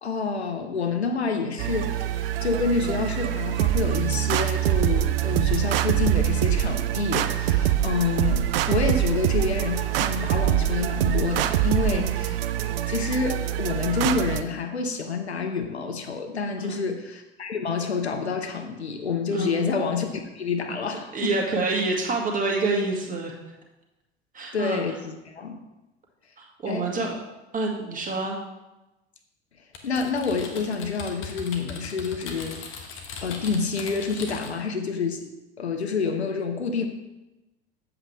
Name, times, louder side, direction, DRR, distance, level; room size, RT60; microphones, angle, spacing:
voice 1, 0.0-12.3 12.6-21.4 24.5-25.0 25.3-25.6 26.7-26.9 29.8-32.9 33.2-35.3 35.6-36.9, left 5 dB, 85° left, 5 dB, 0.8 m, -28 dB
sound 1, 1.6-14.4, right 13 dB, 60° right, 0.5 m, -24 dB
voice 2, 11.9-12.2 16.6-16.8 19.3-19.7 21.1-23.3 24.3-24.8 26.4-27.2 27.5-28.4, right 3 dB, 25° right, 0 dB, 1.8 m, -27 dB
Typing, 29.7-34.7, left 5 dB, 40° left, 1.3 m, -39 dB
7.7 x 7.7 x 3.4 m, 1.0 s
figure-of-eight pair, 70°, 32 cm